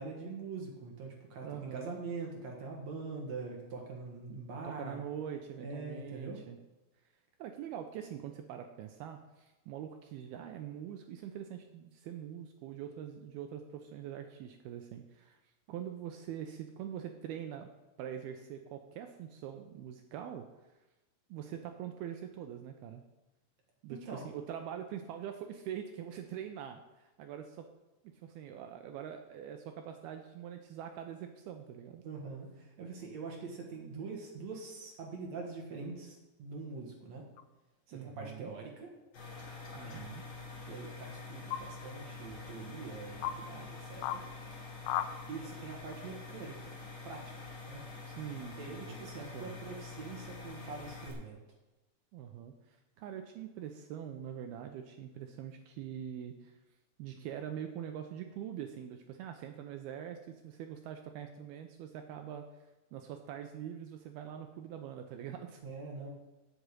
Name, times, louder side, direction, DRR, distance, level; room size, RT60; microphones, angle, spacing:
voice 1, 0.0-5.0 5.6-6.4 23.9-24.2 32.0-37.3 37.9-38.9 39.8-40.0 40.6-44.2 45.3-46.7 47.0-47.8 48.6-51.4 65.6-66.1, right 4 dB, 55° right, 0 dB, 2.0 m, -44 dB
voice 2, 1.4-2.0 4.3-4.4 4.6-6.6 7.4-15.4 15.7-17.7 18.0-20.5 21.3-23.0 23.8-27.7 28.0-32.0 37.9-38.5 39.7-40.2 48.1-49.6 52.1-56.6 57.0-62.6 62.9-65.6, right 9 dB, 80° right, 6 dB, 2.2 m, -44 dB
sound 1, 37.4-37.5 38.9-39.4 41.5-41.6 42.5-42.6 43.2-43.4 44.0-44.2 44.8-45.1, left 12 dB, 80° left, 2.7 m, -35 dB
sound 2, 39.1-51.1, left 3 dB, 35° left, 2.8 m, -46 dB
8.1 x 7.6 x 8.4 m, 1.1 s
omnidirectional pair, 5.2 m